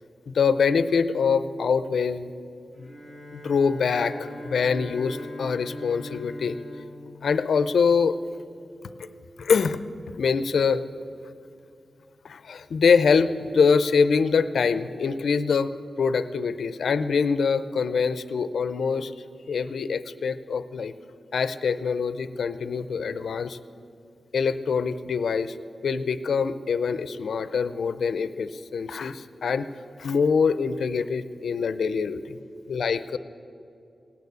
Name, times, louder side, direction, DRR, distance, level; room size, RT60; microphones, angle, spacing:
voice 1, 0.3-2.3 2.8-2.9 3.3-6.6 7.2-8.2 9.4-9.8 10.2-10.8 12.2-15.7 16.0-19.1 19.5-20.9 21.3-23.6 24.3-25.5 25.8-29.7 30.0-32.4 32.7-33.2, left 5 dB, 85° left, 13 dB, 0.5 m, -24 dB
Bowed string instrument, 2.7-8.0, left 1 dB, 45° right, 3.2 m, -41 dB
17.5 x 9.4 x 8.1 m, 2.5 s
wide cardioid pair, 155°, 0 cm